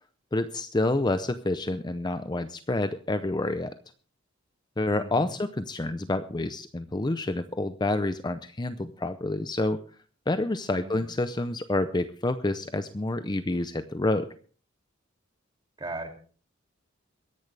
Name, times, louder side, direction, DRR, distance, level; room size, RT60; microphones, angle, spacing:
voice 1, 0.3-3.7 4.8-9.8 10.3-14.3, left 2 dB, 20° left, 11 dB, 0.6 m, -28 dB
voice 2, 4.9-5.3 10.7-11.0 15.8-16.1, right 2 dB, 20° right, 3 dB, 2.5 m, -38 dB
23.0 x 10.5 x 3.3 m, 0.42 s
head